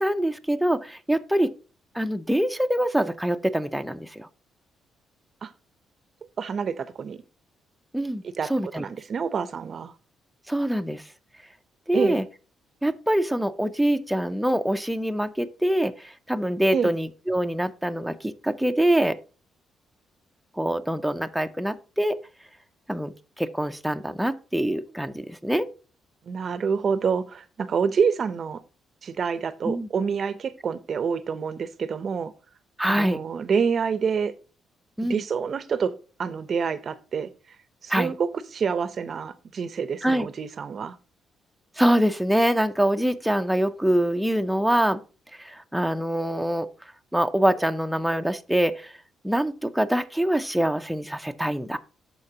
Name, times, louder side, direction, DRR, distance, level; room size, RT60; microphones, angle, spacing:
voice 1, 0.0-1.5 1.9-4.3 7.9-8.2 8.5-8.8 10.5-11.0 11.9-12.2 12.8-19.2 20.6-22.2 22.9-25.7 29.6-29.9 32.8-33.2 35.0-35.2 37.9-38.1 40.0-40.3 41.8-45.0 45.4-46.7 47.1-48.9 49.2-51.8, right 1 dB, ahead, 6 dB, 0.6 m, -24 dB
voice 2, 6.4-7.2 8.4-9.9 11.9-12.2 16.7-16.9 26.3-28.6 29.0-32.3 32.9-34.3 35.1-37.3 37.8-41.0, right 6 dB, 50° right, 14 dB, 0.7 m, -27 dB
12.5 x 4.4 x 2.8 m, 0.36 s
cardioid pair, 90°, 0 cm